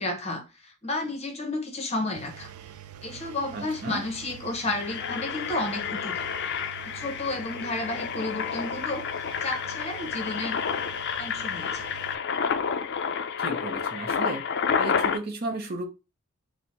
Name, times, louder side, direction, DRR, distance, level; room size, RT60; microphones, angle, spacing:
voice 1, 0.0-2.5 3.0-6.3 6.8-9.1 9.4-10.6 11.2-11.9, left 2 dB, 30° left, 0.8 m, -32 dB
Engine, 2.2-12.2, right 10 dB, 90° right, 0.4 m, -45 dB
Engine 2, 3.5-3.6 3.8-4.0 4.5-15.2, left 6 dB, 50° left, 0.4 m, -30 dB
voice 2, 3.5-4.0 13.4-14.4 14.8-15.9, right 2 dB, 45° right, 0.6 m, -34 dB
4.3 x 2.1 x 4.5 m
head